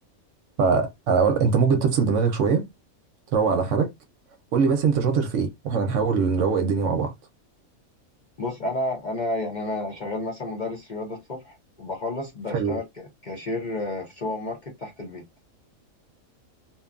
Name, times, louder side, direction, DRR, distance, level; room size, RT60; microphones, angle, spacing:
voice 1, 0.6-2.7 3.3-3.9 4.5-7.1 12.5-12.8, right 5 dB, 65° right, 0.9 m, -22 dB
voice 2, 8.4-15.2, left 2 dB, 45° left, 0.6 m, -31 dB
2.8 x 2.2 x 2.4 m
omnidirectional pair, 1.5 m